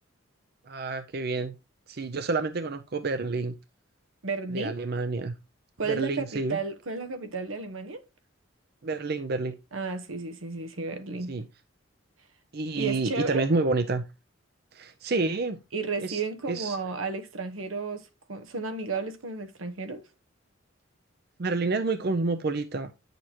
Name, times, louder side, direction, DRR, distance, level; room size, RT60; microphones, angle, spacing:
voice 1, 0.7-1.5 1.9-3.5 4.5-5.3 5.9-6.6 8.8-9.5 11.3-11.4 12.5-14.0 14.7-15.6 16.0-16.2 16.5-16.8 21.4-22.9, right 3 dB, 50° right, 0.6 m, -29 dB
voice 2, 4.2-4.8 5.8-8.0 9.7-11.3 12.7-13.4 15.7-20.0, right 4 dB, 85° right, 1.1 m, -33 dB
9.6 x 6.7 x 2.9 m
head